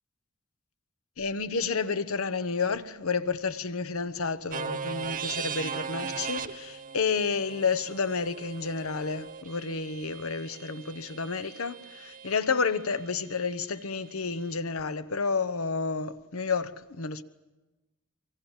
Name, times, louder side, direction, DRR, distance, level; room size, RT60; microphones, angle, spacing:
voice 1, 1.2-17.2, left 5 dB, 90° left, 1.0 m, -30 dB
sound 1, 4.5-12.4, right 6 dB, 40° right, 0.8 m, -38 dB
24.5 x 23.5 x 7.2 m
head